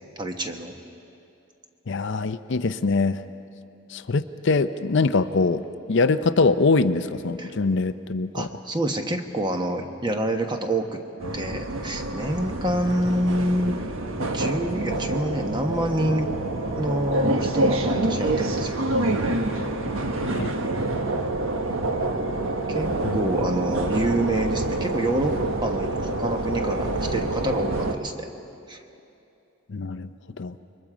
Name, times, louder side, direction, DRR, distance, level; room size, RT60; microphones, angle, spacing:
voice 1, 0.2-0.8 7.4-7.5 8.3-11.0 11.3-13.8 14.2-16.3 16.7-18.8 22.7-28.3 28.7-28.8, right 1 dB, 20° right, 5 dB, 1.2 m, -27 dB
voice 2, 1.9-3.2 3.9-8.5 20.2-20.5 23.0-23.2 29.7-30.1 30.4-30.6, left 3 dB, 60° left, 11 dB, 0.6 m, -23 dB
sound 1, 11.2-27.9, right 2 dB, 75° right, 1.3 m, -27 dB
28.0 x 22.5 x 5.0 m, 2.7 s
head